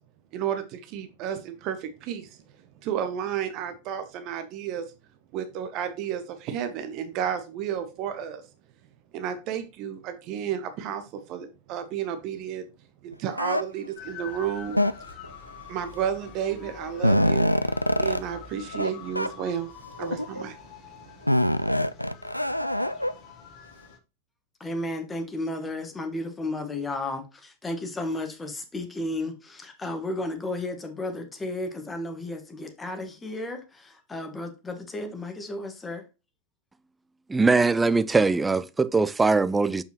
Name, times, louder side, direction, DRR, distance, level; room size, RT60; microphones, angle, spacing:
voice 1, 0.3-2.4 2.8-4.8 5.3-8.4 9.1-12.7 13.0-14.8 15.7-19.7 20.0-20.6, right 9 dB, 40° right, 0.9 m, -32 dB
sound 1, 13.3-13.6 14.7-15.3 16.2-16.3 16.7-18.2 18.7-18.9 19.1-19.3 20.0-20.4 21.3-23.1, left 1 dB, 90° left, 0.3 m, -24 dB
sound 2, 14.0-24.0, left 7 dB, 35° left, 1.1 m, -46 dB
voice 2, 24.6-36.0, left 2 dB, 15° left, 1.4 m, -33 dB
voice 3, 37.3-39.8, right 3 dB, 10° right, 0.4 m, -21 dB
6.7 x 5.5 x 2.9 m
figure-of-eight pair, 90°, 0 cm